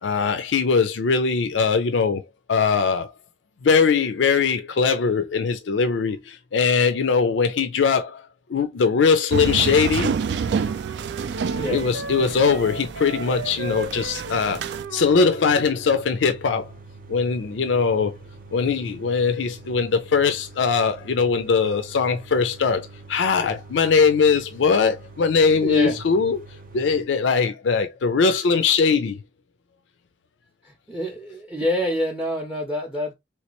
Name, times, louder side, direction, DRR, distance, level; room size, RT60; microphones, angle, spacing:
voice 1, 0.0-2.2 2.5-3.1 3.6-10.1 11.7-16.7 17.1-18.1 18.5-26.5 26.7-29.2, left 5 dB, 85° left, 0.4 m, -21 dB
sound 1, 9.3-14.8, right 6 dB, 65° right, 0.3 m, -29 dB
sound 2, 10.3-15.5, right 3 dB, 90° right, 0.9 m, -35 dB
voice 2, 11.4-11.8 25.5-26.0 30.6-33.1, equal, 5° right, 0.5 m, -27 dB
sound 3, 13.3-27.0, right 3 dB, 50° right, 0.7 m, -45 dB
3.2 x 3.2 x 2.9 m
head